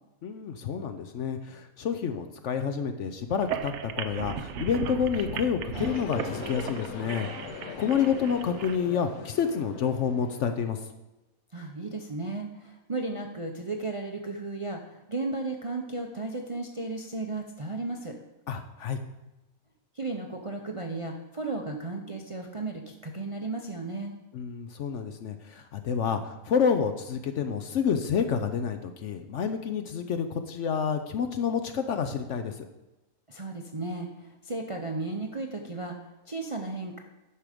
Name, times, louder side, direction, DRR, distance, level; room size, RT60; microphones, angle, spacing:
voice 1, 0.2-10.9 18.5-19.0 24.3-32.7, left 7 dB, 65° left, 8 dB, 0.8 m, -29 dB
sound 1, 3.3-8.8, right 8 dB, 65° right, 0.8 m, -36 dB
sound 2, 5.7-10.7, left 5 dB, 80° left, 1.3 m, -40 dB
voice 2, 11.5-18.2 19.9-24.1 33.3-37.0, right 3 dB, 35° right, 2 dB, 0.5 m, -34 dB
9.9 x 6.2 x 5.0 m, 1.0 s
omnidirectional pair, 1.6 m